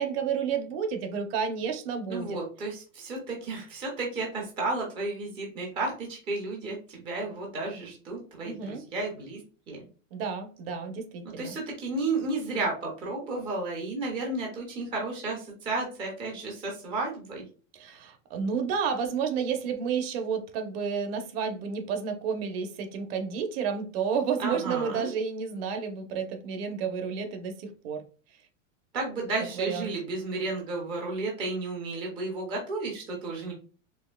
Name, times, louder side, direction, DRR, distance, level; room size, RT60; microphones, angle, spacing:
voice 1, 0.0-2.4 8.4-8.8 10.1-11.6 17.7-28.0 29.6-29.9, right 6 dB, 50° right, 0.8 m, -31 dB
voice 2, 2.1-9.4 9.7-9.9 11.4-17.5 24.4-25.1 28.9-33.5, right 3 dB, 15° right, 0.4 m, -32 dB
4.3 x 2.7 x 2.2 m
supercardioid pair, 160°, 39 cm